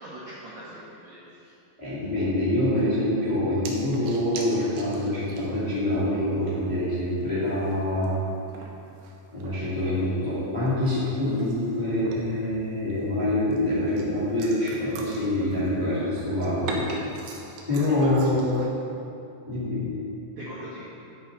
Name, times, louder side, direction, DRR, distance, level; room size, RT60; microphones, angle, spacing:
voice 1, 0.0-1.5 17.9-18.3 20.4-20.9, right 1 dB, 60° right, -9 dB, 1.9 m, -40 dB
voice 2, 1.8-8.1 9.3-16.8 17.7-18.5 19.4-20.0, left 1 dB, 15° left, -11 dB, 1.5 m, -25 dB
sound 1, 3.7-5.8 6.0-6.1 6.6-6.7 7.3-10.0 10.3-12.5 12.9-15.9 16.1-18.7, right 3 dB, 80° right, 3.3 m, -42 dB
11.0 x 9.0 x 4.0 m, 2.7 s
omnidirectional pair, 5.3 m